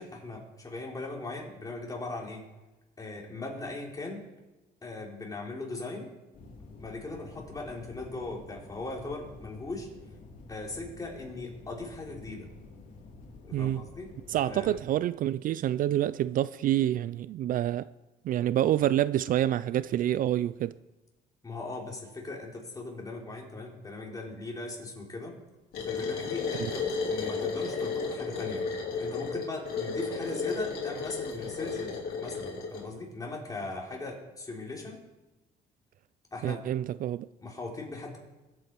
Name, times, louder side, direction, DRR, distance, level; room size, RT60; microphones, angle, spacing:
voice 1, 0.0-2.4 3.0-4.2 4.8-6.1 6.8-9.9 10.5-12.5 13.5-14.1 14.4-14.7 21.4-25.4 25.9-28.6 29.0-35.0 36.3-36.6 37.4-38.2, left 2 dB, 20° left, 3.6 m, -39 dB
sound 1, 6.3-14.9, left 3 dB, 50° left, 3.4 m, -49 dB
voice 2, 13.5-13.9 14.3-17.9 18.2-20.7 26.6-26.7 36.4-37.3, right 12 dB, 55° right, 0.4 m, -27 dB
sound 2, 25.7-32.9, left 4 dB, 65° left, 3.8 m, -33 dB
21.0 x 8.4 x 4.6 m
cardioid pair, 110°, 17 cm